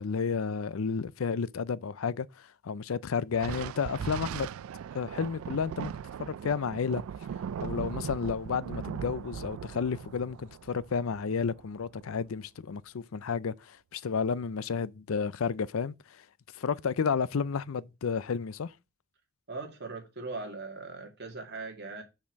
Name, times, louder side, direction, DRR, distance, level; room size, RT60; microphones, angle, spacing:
voice 1, 0.0-4.6 4.9-5.9 6.2-7.0 7.6-15.9 16.5-18.7, left 5 dB, 80° left, 0.5 m, -31 dB
Thunder, 3.3-12.1, right 8 dB, 85° right, 0.3 m, -39 dB
voice 2, 19.5-22.0, right 3 dB, 50° right, 2.4 m, -40 dB
6.4 x 6.0 x 5.2 m
head